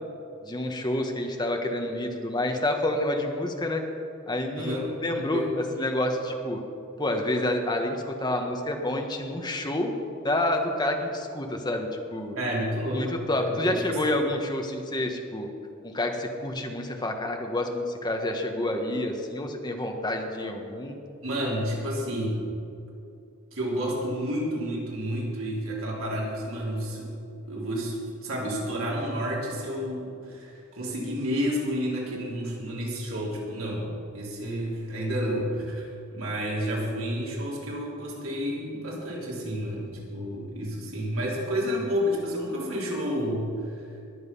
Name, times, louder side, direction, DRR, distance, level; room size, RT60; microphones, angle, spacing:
voice 1, 0.4-3.8 4.3-6.6 7.0-9.9 10.2-12.3 12.9-15.5 15.8-21.0, left 1 dB, 20° left, 3 dB, 1.3 m, -28 dB
voice 2, 4.5-5.5 12.4-13.0 13.4-14.1 21.2-22.4 23.5-27.1 27.5-28.0 28.2-43.8, equal, 80° right, -4 dB, 3.5 m, -30 dB
21.0 x 8.1 x 5.5 m, 2.6 s
head